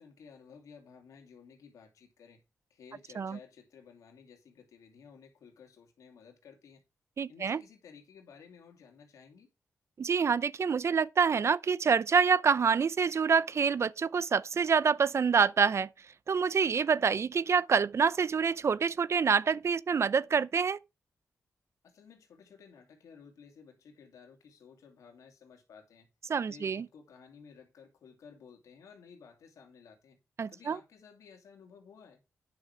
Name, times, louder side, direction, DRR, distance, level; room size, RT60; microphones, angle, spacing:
voice 1, 0.0-2.4 2.7-6.8 7.3-9.5 21.8-26.1 26.5-30.2 30.5-32.2, left 6 dB, 90° left, 2.7 m, -55 dB
voice 2, 7.2-7.6 10.0-15.9 16.3-20.8 26.3-26.9 30.4-30.8, right 6 dB, 60° right, 0.6 m, -27 dB
9.4 x 6.3 x 4.7 m
cardioid pair, 60°, 5 cm